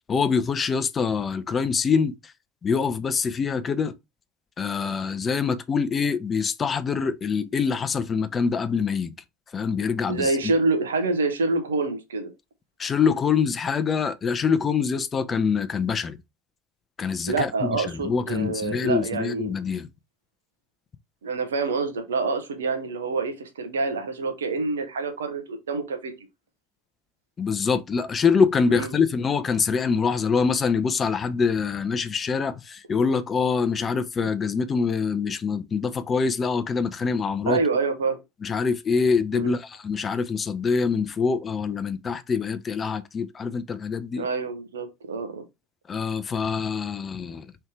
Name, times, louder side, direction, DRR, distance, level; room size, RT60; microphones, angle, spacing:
voice 1, 0.1-2.3 2.6-3.9 4.6-9.1 9.5-10.4 12.8-16.2 17.0-19.9 27.4-37.6 38.4-44.3 45.9-47.5, left 5 dB, 30° left, 0.6 m, -25 dB
voice 2, 10.1-12.3 17.3-19.5 21.2-26.3 28.7-28.9 37.5-38.2 39.3-39.5 44.2-45.4, right 3 dB, 75° right, 0.9 m, -27 dB
3.3 x 2.7 x 4.6 m
figure-of-eight pair, 65°, 0 cm